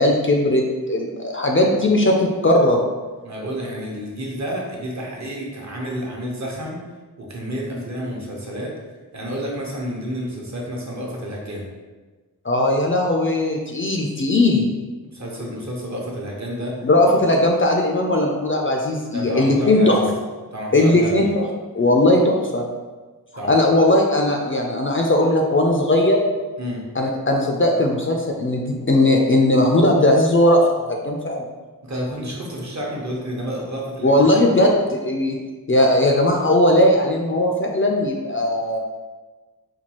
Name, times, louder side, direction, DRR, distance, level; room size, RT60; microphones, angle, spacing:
voice 1, 0.0-2.8 7.7-7.8 12.4-14.7 16.8-20.0 20.7-21.5 21.8-22.7 23.4-26.2 27.0-31.5 34.0-35.4 35.7-38.8, left 1 dB, 35° left, 1 dB, 0.4 m, -18 dB
voice 2, 3.2-6.8 7.2-8.7 9.1-11.6 15.1-16.8 19.1-19.9 20.5-21.1 23.3-23.6 26.6-26.8 31.8-34.2, equal, 50° right, -2 dB, 0.8 m, -30 dB
4.4 x 2.3 x 2.9 m, 1.3 s
wide cardioid pair, 80°, 37 cm